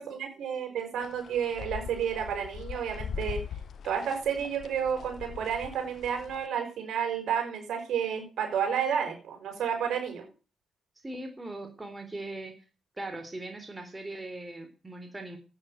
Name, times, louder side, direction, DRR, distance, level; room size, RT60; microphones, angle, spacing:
voice 1, 0.0-3.4 3.8-10.2, right 8 dB, 70° right, 4 dB, 5.8 m, -31 dB
sound 1, 1.0-6.5, left 7 dB, 65° left, 1.4 m, -41 dB
voice 2, 11.0-12.6 13.0-15.4, right 2 dB, 20° right, 6 dB, 3.6 m, -40 dB
11.5 x 9.3 x 8.0 m, 0.36 s
supercardioid pair, 60°, 0 cm